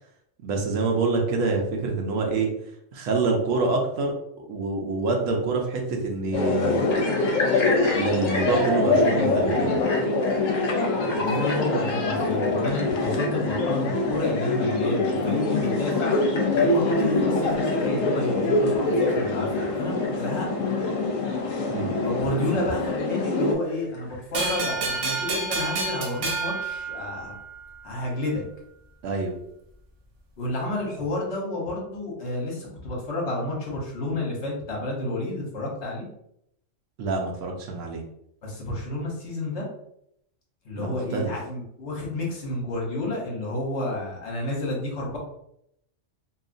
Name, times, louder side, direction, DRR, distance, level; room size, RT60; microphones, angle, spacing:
voice 1, 0.4-2.5 2.9-4.1 4.5-6.8 7.9-9.8 21.7-22.0 29.0-29.3 37.0-38.0 40.7-41.3, right 3 dB, 85° right, 1 dB, 1.0 m, -26 dB
sound 1, 6.3-23.5, left 2 dB, 85° left, 1.0 m, -24 dB
sound 2, 6.9-25.2, left 2 dB, 35° left, 0.5 m, -39 dB
voice 2, 11.0-16.2 16.5-20.5 22.0-27.3 27.8-28.4 30.4-36.0 38.4-39.7 40.6-45.2, left 2 dB, 65° left, -2 dB, 1.2 m, -30 dB
sound 3, 24.3-27.6, right 3 dB, 60° right, 0.7 m, -29 dB
2.8 x 2.4 x 2.5 m, 0.75 s
omnidirectional pair, 1.3 m